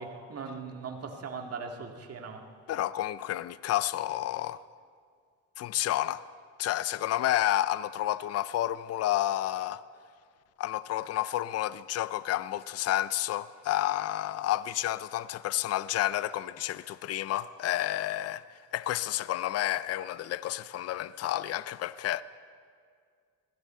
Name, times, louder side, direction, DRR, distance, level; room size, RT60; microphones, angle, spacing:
voice 1, 0.0-2.4, right 4 dB, 50° right, 2.1 m, -39 dB
voice 2, 2.7-4.6 5.6-6.2 6.6-9.8 10.6-22.2, left 13 dB, 55° left, 0.5 m, -30 dB
21.5 x 15.5 x 4.4 m
cardioid pair, 90°, 30 cm